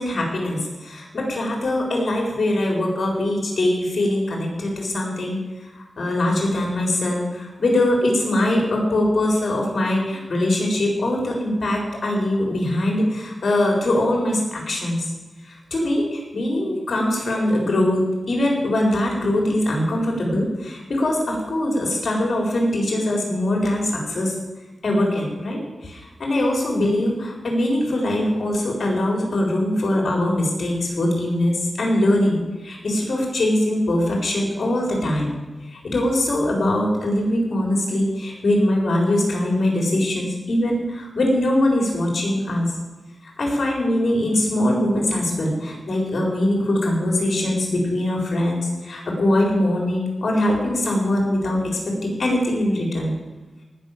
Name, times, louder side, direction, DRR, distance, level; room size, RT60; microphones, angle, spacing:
voice 1, 0.0-5.4 5.8-15.1 15.5-24.3 24.8-35.3 35.7-42.7 43.4-51.6 52.0-53.1, left 1 dB, 65° left, 0 dB, 4.3 m, -22 dB
18.5 x 6.5 x 7.4 m, 1.2 s
wide cardioid pair, 80°, 0 cm